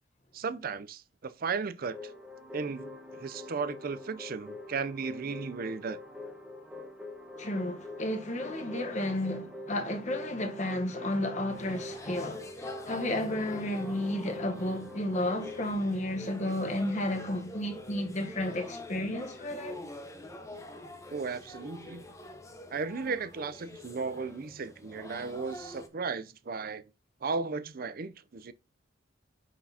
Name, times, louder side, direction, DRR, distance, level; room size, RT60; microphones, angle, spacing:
voice 1, 0.3-2.0 2.5-6.0 21.1-22.0 22.7-26.8 27.2-28.5, right 4 dB, 50° right, 0.5 m, -35 dB
sound 1, 1.9-15.7, left 1 dB, 5° right, 1.2 m, -44 dB
voice 2, 7.4-19.8, left 1 dB, 40° left, 1.0 m, -32 dB
sound 2, 11.5-25.9, left 1 dB, 15° left, 0.8 m, -46 dB
6.1 x 5.9 x 2.8 m
head